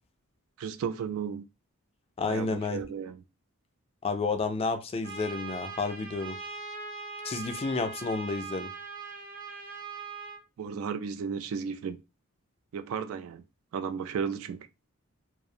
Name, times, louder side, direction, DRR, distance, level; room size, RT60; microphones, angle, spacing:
voice 1, 0.6-1.4 2.2-3.2 10.6-12.0 12.7-13.4 13.7-14.7, right 6 dB, 75° right, 0.3 m, -34 dB
voice 2, 2.2-2.8 4.0-6.4 7.2-8.7, left 4 dB, 30° left, 0.3 m, -31 dB
Trumpet, 5.0-10.4, right 4 dB, 45° right, 0.7 m, -41 dB
2.4 x 2.0 x 2.6 m
head